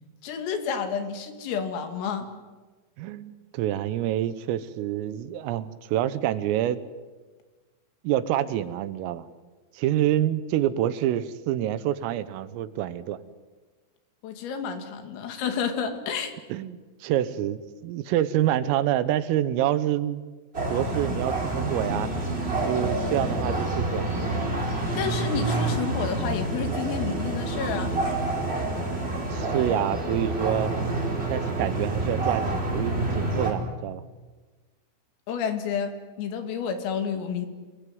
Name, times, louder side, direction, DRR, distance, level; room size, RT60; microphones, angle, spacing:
voice 1, 0.2-2.3 14.2-16.3 25.0-28.0 35.3-35.9 36.2-37.5, left 6 dB, 80° left, 7 dB, 5.1 m, -30 dB
voice 2, 3.0-6.8 8.1-9.3 9.8-13.2 16.5-20.2 20.7-22.1 22.5-24.2 29.3-30.7 31.3-34.0, right 12 dB, 80° right, 14 dB, 3.7 m, -27 dB
sound 1, 20.5-33.5, right 2 dB, 15° right, 4.0 m, -28 dB
28.0 x 20.5 x 9.5 m, 1.3 s
omnidirectional pair, 5.9 m